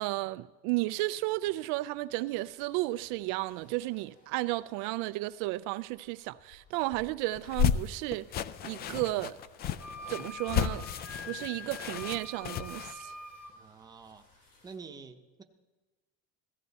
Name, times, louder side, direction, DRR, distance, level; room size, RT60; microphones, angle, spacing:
voice 1, 0.0-8.3 8.6-9.4 10.1-10.9 11.3-13.1, right 19 dB, 75° right, 0.5 m, -33 dB
cars passing close by wet road, 1.9-14.8, left 2 dB, 60° left, 5.7 m, -62 dB
sound 1, 7.4-12.9, left 10 dB, 35° left, 0.4 m, -33 dB
Wind instrument woodwind instrument, 9.8-13.5, left 2 dB, 5° left, 1.2 m, -44 dB
voice 2, 13.5-14.3 14.6-15.4, right 5 dB, 15° right, 0.8 m, -48 dB
16.5 x 14.5 x 4.1 m
cardioid pair, 155°, 29 cm